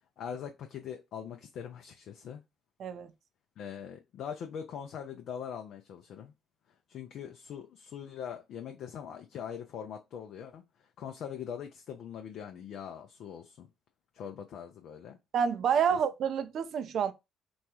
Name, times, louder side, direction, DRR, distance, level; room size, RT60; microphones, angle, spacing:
voice 1, 0.2-2.4 3.6-6.3 6.9-13.7 14.1-15.2, left 8 dB, 65° left, 0.4 m, -42 dB
voice 2, 2.8-3.1 15.3-17.1, right 7 dB, 60° right, 0.4 m, -28 dB
3.0 x 2.3 x 2.9 m
hypercardioid pair, 50°, 0 cm